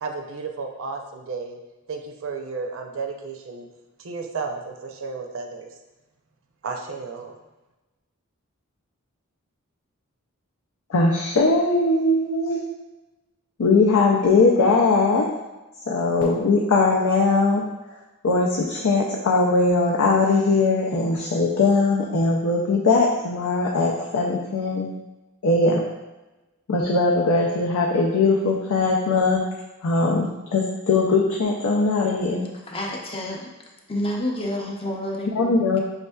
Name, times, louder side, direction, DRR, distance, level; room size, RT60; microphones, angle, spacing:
voice 1, 0.0-1.6 1.9-3.7 4.0-5.7 6.6-7.3, right 4 dB, 65° right, 3 dB, 0.5 m, -33 dB
voice 2, 10.9-12.6 13.6-15.3 15.9-17.6 18.2-24.9 25.4-25.8 26.7-29.4 29.8-32.5 35.4-35.8, left 3 dB, 80° left, -2 dB, 0.5 m, -20 dB
voice 3, 32.7-33.5 33.9-35.8, left 1 dB, 25° left, 0 dB, 0.6 m, -29 dB
5.2 x 3.5 x 2.3 m, 1.1 s
head